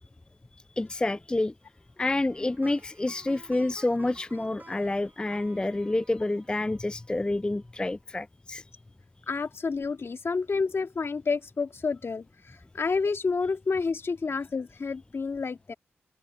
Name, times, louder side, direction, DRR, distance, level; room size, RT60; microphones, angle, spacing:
voice 1, 0.8-1.5 2.0-8.6, left 2 dB, 20° left, 0.3 m, -28 dB
Plucked string instrument, 2.1-7.3, right 3 dB, 40° right, 5.5 m, -53 dB
voice 2, 9.3-12.3 12.7-15.7, left 4 dB, 55° left, 2.0 m, -29 dB
open air
supercardioid pair, 40°, 5 cm